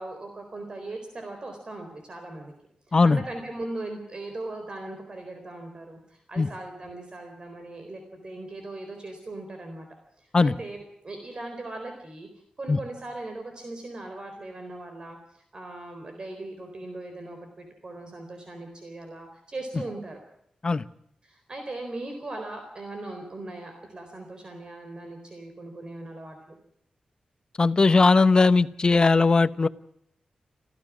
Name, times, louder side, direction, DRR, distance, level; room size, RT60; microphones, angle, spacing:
voice 1, 0.0-2.5 2.9-9.9 10.2-12.3 12.6-20.2 21.2-26.5, right 2 dB, 40° right, 5 dB, 4.1 m, -39 dB
voice 2, 27.6-29.7, left 3 dB, 35° left, 14 dB, 0.9 m, -19 dB
27.5 x 15.5 x 6.2 m, 0.73 s
wide cardioid pair, 110°, 2 cm